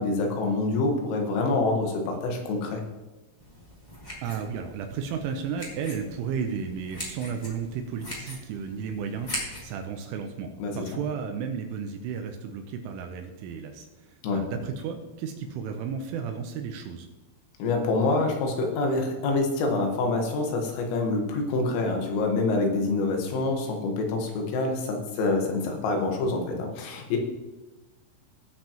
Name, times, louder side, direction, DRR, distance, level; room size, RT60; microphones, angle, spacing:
voice 1, 0.0-2.8 10.6-10.8 14.2-14.4 17.6-27.2, left 3 dB, 80° left, 2 dB, 4.0 m, -26 dB
sound 1, 3.4-9.7, equal, 15° left, 1.5 m, -41 dB
voice 2, 4.2-17.1, right 6 dB, 80° right, 5 dB, 3.1 m, -33 dB
18.0 x 7.6 x 3.0 m, 1.1 s
omnidirectional pair, 5.9 m